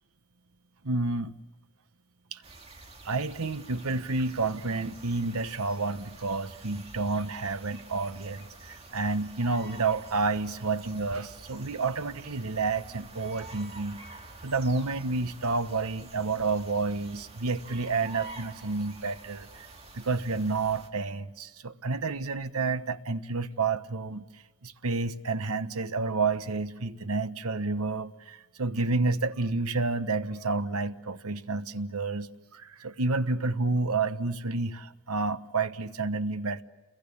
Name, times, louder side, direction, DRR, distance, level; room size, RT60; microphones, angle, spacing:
voice 1, 0.8-1.3 2.3-2.4 3.0-14.0 14.4-19.7 19.9-24.2 24.6-36.6, right 3 dB, 85° right, 1.2 m, -30 dB
sound 1, 2.4-20.9, right 2 dB, 30° right, 2.3 m, -48 dB
29.5 x 22.0 x 8.6 m
head